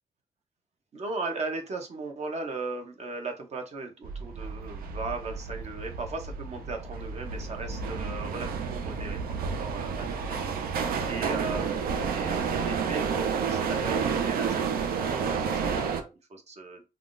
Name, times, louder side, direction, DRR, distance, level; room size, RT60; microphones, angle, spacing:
voice 1, 0.9-16.9, right 3 dB, 50° right, 4 dB, 0.8 m, -38 dB
sound 1, 4.0-16.0, right 6 dB, 85° right, 0.5 m, -30 dB
3.4 x 2.3 x 2.5 m, 0.28 s
cardioid pair, 100°, 15 cm